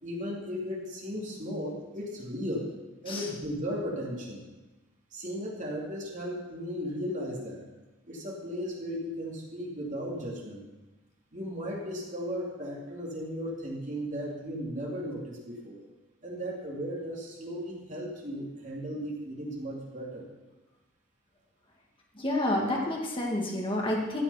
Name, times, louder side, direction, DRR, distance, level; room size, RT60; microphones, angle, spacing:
voice 1, 0.0-2.7 3.0-4.4 5.1-7.6 8.1-10.6 11.3-15.8 16.2-20.3, equal, 40° right, -2 dB, 2.6 m, -36 dB
voice 2, 22.2-24.2, left 1 dB, 25° left, -1 dB, 1.7 m, -29 dB
13.5 x 7.2 x 5.6 m, 1.1 s
head